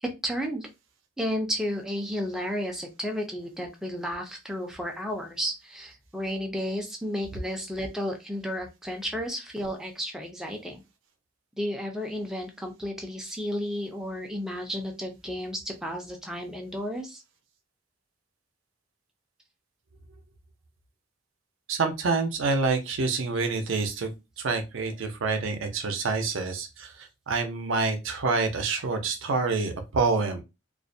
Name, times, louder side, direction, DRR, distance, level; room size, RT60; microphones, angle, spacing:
voice 1, 0.0-0.7 1.2-10.8 11.6-17.2, equal, 5° right, 2 dB, 0.4 m, -32 dB
voice 2, 21.7-24.1 24.4-30.4, right 4 dB, 70° right, 6 dB, 0.5 m, -27 dB
2.4 x 2.1 x 2.6 m, 0.25 s
head